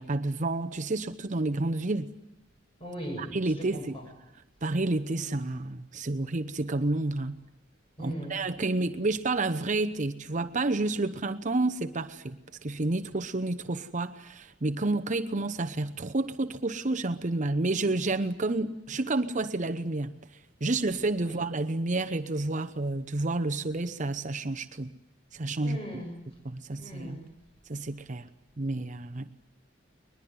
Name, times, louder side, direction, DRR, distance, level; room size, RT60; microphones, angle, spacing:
voice 1, 0.0-2.1 3.2-4.0 4.6-7.4 8.0-20.1 20.6-24.9 25.3-25.8 26.4-27.2 27.7-28.3 28.6-29.3, right 2 dB, 40° right, 8 dB, 0.9 m, -30 dB
voice 2, 2.8-3.3 3.6-4.0 8.0-8.4 21.2-21.4 25.6-26.2 26.8-27.3, equal, 30° left, 3 dB, 7.6 m, -39 dB
22.0 x 21.0 x 9.6 m, 0.85 s
head